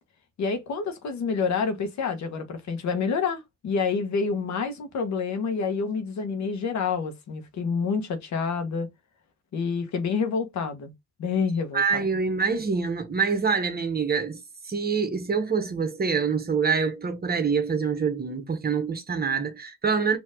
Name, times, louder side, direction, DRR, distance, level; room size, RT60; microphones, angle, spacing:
voice 1, 0.4-8.9 9.5-10.9 11.2-12.0, left 5 dB, 65° left, 1.2 m, -28 dB
voice 2, 11.7-20.2, right 5 dB, 30° right, 1.2 m, -26 dB
4.4 x 2.8 x 3.7 m
cardioid pair, 90°, 30 cm